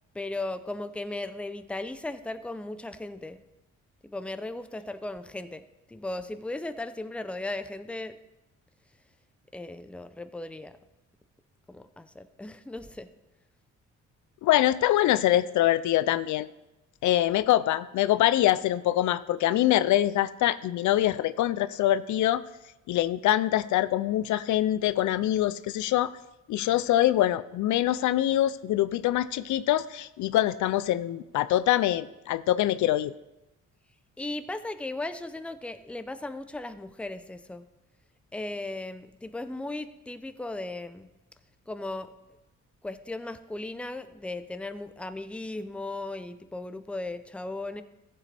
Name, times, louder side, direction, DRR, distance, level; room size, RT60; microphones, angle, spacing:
voice 1, 0.1-3.4 4.0-5.6 5.9-8.1 9.5-10.7 11.7-13.1 34.2-37.7 38.3-41.1 41.7-42.1 42.8-47.8, left 2 dB, 5° left, 10 dB, 0.6 m, -36 dB
voice 2, 14.4-16.5 17.0-22.4 22.9-26.1 26.5-33.1, left 13 dB, 75° left, 15 dB, 0.5 m, -24 dB
14.5 x 7.6 x 3.4 m, 0.98 s
cardioid pair, 90°, 30 cm